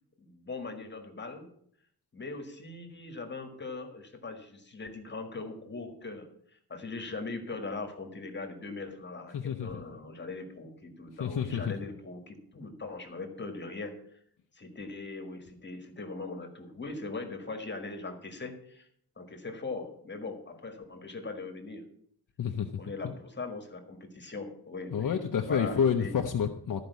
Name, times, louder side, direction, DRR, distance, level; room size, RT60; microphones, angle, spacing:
voice 1, 0.2-1.5 2.1-14.0 14.5-18.9 19.2-21.8 22.8-26.2, left 3 dB, 30° left, 5 dB, 1.6 m, -40 dB
voice 2, 9.3-9.8 11.2-11.7 22.4-23.1 24.9-26.9, left 7 dB, 55° left, 4 dB, 0.8 m, -29 dB
13.5 x 5.1 x 8.1 m, 0.67 s
wide cardioid pair, 155°, 39 cm